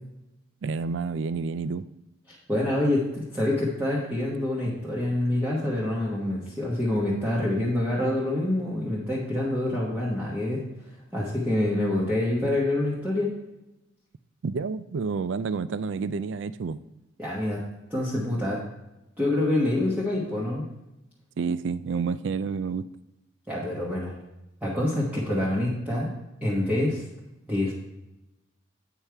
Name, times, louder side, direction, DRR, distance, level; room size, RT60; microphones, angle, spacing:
voice 1, 0.6-1.8 14.4-16.8 21.4-22.9, right 5 dB, 65° right, 15 dB, 0.4 m, -29 dB
voice 2, 2.3-13.3 17.2-17.6 17.9-18.6 19.2-20.6 23.5-24.2 24.6-26.1 26.4-27.0 27.5-27.7, left 1 dB, 10° right, -7 dB, 1.2 m, -26 dB
8.2 x 5.7 x 4.6 m, 0.95 s
head